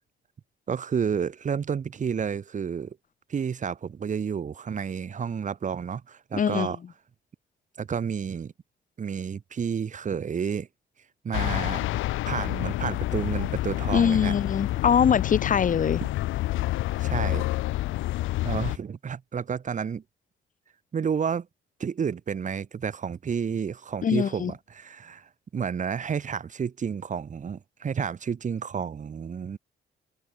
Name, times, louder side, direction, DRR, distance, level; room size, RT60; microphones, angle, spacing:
voice 1, 0.7-3.0 3.3-6.8 7.8-8.5 9.0-10.7 11.2-14.3 17.0-17.5 18.4-20.0 20.9-21.5 21.8-29.6, right 7 dB, 40° right, 1.1 m, -30 dB
voice 2, 6.4-6.7 13.9-16.0 24.0-24.5, left 7 dB, 40° left, 1.0 m, -23 dB
sound 1, 11.3-18.8, left 17 dB, 85° left, 0.7 m, -28 dB
open air
cardioid pair, 90°, 20 cm